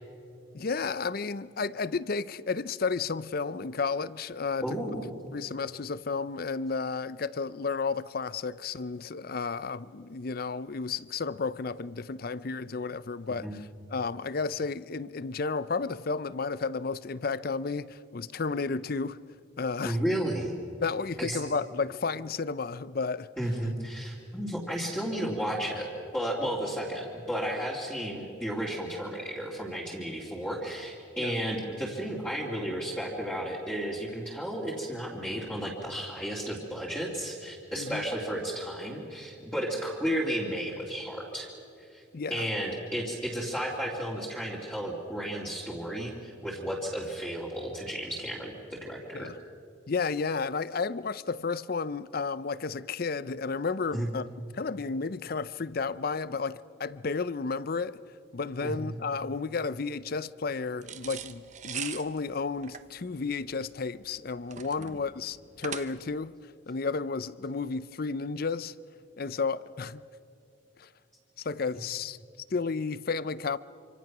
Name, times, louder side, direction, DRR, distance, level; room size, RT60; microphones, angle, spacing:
voice 1, 0.5-4.8 5.3-19.2 19.6-20.0 20.8-23.3 31.2-31.3 37.8-38.0 42.1-42.5 49.1-49.4 49.9-54.3 54.5-58.0 58.3-66.4 66.7-68.7 69.2-70.0 70.8-70.9 71.4-72.2 72.5-73.6, left 4 dB, 50° left, 0.5 m, -32 dB
voice 2, 4.6-5.1 13.4-13.5 19.8-20.5 21.2-21.4 23.4-25.9 26.1-41.5 41.9-42.0 42.3-49.3 53.9-54.1 58.6-58.9 64.8-65.0, equal, 5° left, 2.6 m, -33 dB
sound 1, 60.8-66.2, right 8 dB, 40° right, 0.9 m, -41 dB
26.5 x 26.0 x 6.1 m
head